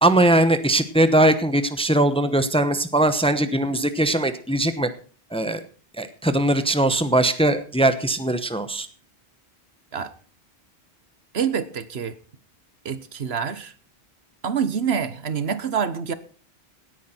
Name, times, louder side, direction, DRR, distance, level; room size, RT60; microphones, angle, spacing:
voice 1, 0.0-4.9 5.3-5.6 6.0-8.9, right 1 dB, 5° left, 11 dB, 0.9 m, -20 dB
voice 2, 11.3-12.1 12.8-13.7 14.4-16.1, right 7 dB, 65° right, 13 dB, 1.3 m, -26 dB
17.5 x 9.7 x 4.4 m, 0.41 s
omnidirectional pair, 1.1 m